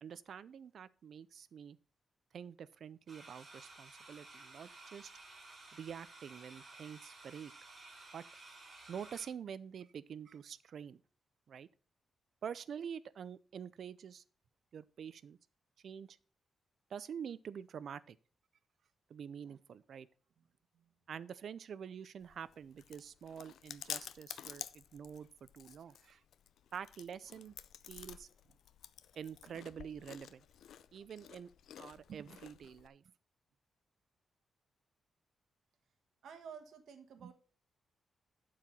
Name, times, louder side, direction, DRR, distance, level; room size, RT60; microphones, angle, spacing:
voice 1, 0.0-1.8 2.3-5.1 5.7-7.5 8.1-8.2 8.9-11.0 11.5-11.7 12.4-14.2 14.7-15.4 15.8-16.2 16.9-18.2 19.1-20.1 21.1-25.3 25.5-26.2 26.7-27.5 27.9-28.3 29.2-30.4 30.9-31.5 31.8-33.0 37.2-37.3, right 7 dB, 55° right, 0.5 m, -47 dB
sound 1, 3.1-9.3, right 2 dB, 30° right, 2.6 m, -55 dB
Chewing mastication, 22.2-32.9, left 9 dB, 90° left, 0.5 m, -51 dB
voice 2, 36.2-37.3, right 7 dB, 75° right, 1.3 m, -51 dB
11.5 x 4.8 x 5.6 m
wide cardioid pair, 180°, 0 cm